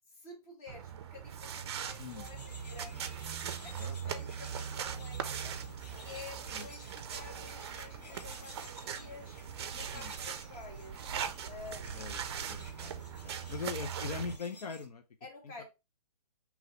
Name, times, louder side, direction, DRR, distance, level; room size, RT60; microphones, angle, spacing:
voice 1, 0.1-3.2 3.6-5.6 6.0-9.4 9.7-11.2 11.5-12.2 13.6-13.7 15.2-15.6, left 4 dB, 25° left, 1.4 m, -50 dB
sound 1, 0.7-14.4, right 8 dB, 40° right, 0.5 m, -40 dB
sound 2, 1.6-14.9, left 3 dB, 85° left, 1.4 m, -55 dB
voice 2, 3.8-4.2 6.5-6.7 9.9-10.1 11.9-12.2 12.5-15.0 15.4-15.6, left 5 dB, 70° left, 0.6 m, -42 dB
3.8 x 3.0 x 3.8 m
hypercardioid pair, 155°, 20 cm